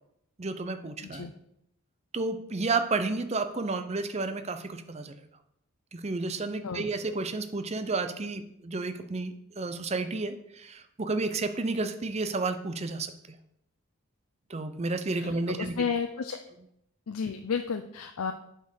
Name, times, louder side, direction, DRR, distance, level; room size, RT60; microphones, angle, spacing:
voice 1, 0.4-1.3 2.1-5.2 5.9-13.1 14.5-15.7, right 3 dB, 30° right, 9 dB, 0.6 m, -31 dB
voice 2, 15.6-16.4 17.1-18.3, left 6 dB, 85° left, 7 dB, 0.5 m, -32 dB
8.3 x 4.5 x 6.4 m, 0.78 s
head